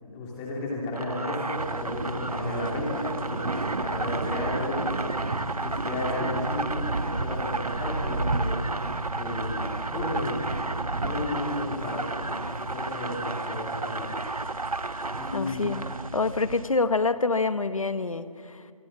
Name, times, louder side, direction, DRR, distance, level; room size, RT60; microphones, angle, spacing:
voice 1, 0.0-5.1 5.6-8.6 9.1-10.5 11.0-14.1 15.1-15.7, left 2 dB, 10° left, -3 dB, 2.9 m, -33 dB
sound 1, 0.9-16.1, right 3 dB, 85° right, 1.1 m, -34 dB
sound 2, 1.6-16.6, right 2 dB, 65° right, 1.6 m, -34 dB
voice 2, 15.3-15.9 16.1-18.7, left 3 dB, 65° left, 12 dB, 1.3 m, -26 dB
25.5 x 22.5 x 7.4 m, 2.3 s
figure-of-eight pair, 165°, 19 cm